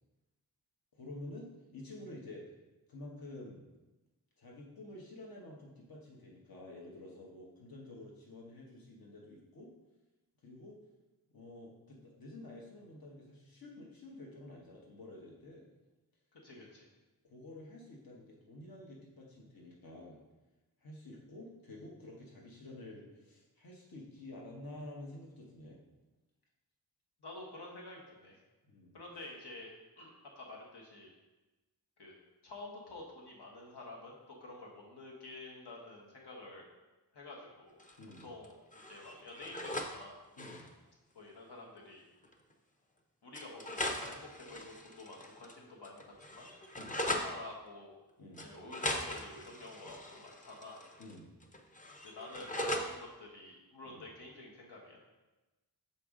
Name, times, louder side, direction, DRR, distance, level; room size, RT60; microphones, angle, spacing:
voice 1, 0.9-2.5 2.9-3.6 4.4-9.7 10.4-10.7 11.3-15.6 16.5-16.6 17.2-20.2 20.8-25.8 28.6-29.0 38.0-38.3 40.4-40.6 46.8-47.0 48.2-48.5 51.0-51.3 53.9-54.0, left 1 dB, 60° left, -2 dB, 1.1 m, -50 dB
voice 2, 16.3-16.9 27.2-28.4 28.9-29.7 30.0-31.1 32.0-32.1 32.4-36.7 37.1-37.8 38.2-38.6 38.9-40.2 41.1-42.0 43.2-46.5 47.0-47.9 48.4-50.8 52.0-55.0, left 2 dB, 85° left, -2 dB, 1.2 m, -49 dB
sound 1, 37.8-38.5 38.7-39.9 40.2-40.7 41.8-41.9 42.2-42.3 43.3-45.6 45.8-47.3 48.4-51.2 51.4-52.9, left 1 dB, 20° left, 0.5 m, -40 dB
6.7 x 4.2 x 3.6 m, 1.1 s
wide cardioid pair, 115°, 39 cm